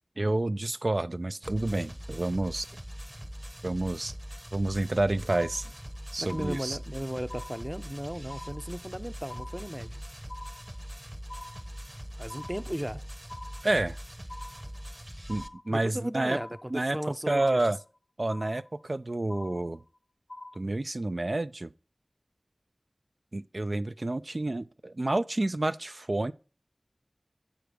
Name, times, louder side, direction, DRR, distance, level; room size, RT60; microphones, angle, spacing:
voice 1, 0.2-2.7 3.6-4.1 4.5-5.7 6.1-6.8 13.6-14.0 15.3-16.4 16.7-17.0 17.3-17.8 18.2-19.8 20.6-21.7 23.3-26.3, right 2 dB, 65° right, 0.4 m, -29 dB
sound 1, 1.4-15.5, equal, 25° right, 0.9 m, -42 dB
sound 2, 5.3-6.0 6.3-7.0 7.3-8.0 8.3-9.0 9.3-10.0 10.3-11.0 11.3-12.0 12.3-13.0 13.3-14.0 14.3-15.0 15.3-16.0 16.3-17.0 17.3-18.0 18.3-19.0 19.3-20.0 20.3-20.6, left 1 dB, 65° left, 0.6 m, -46 dB
voice 2, 6.2-10.0 12.2-13.0 15.7-17.7, equal, 10° right, 0.5 m, -36 dB
8.0 x 5.1 x 6.1 m
wide cardioid pair, 45°, 0 cm